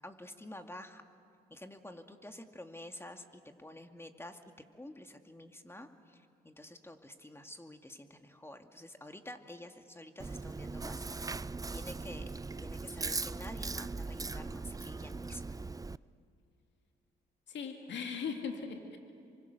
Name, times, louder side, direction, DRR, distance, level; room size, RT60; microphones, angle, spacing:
voice 1, 0.0-1.0 1.5-12.3 12.6-15.7, left 1 dB, 15° left, 5 dB, 2.3 m, -49 dB
Chewing mastication, 10.2-16.0, right 3 dB, 20° right, 0.5 m, -39 dB
voice 2, 17.5-19.0, left 6 dB, 75° left, 4 dB, 2.5 m, -39 dB
28.0 x 24.5 x 6.8 m, 2.5 s
supercardioid pair, 45°, 19 cm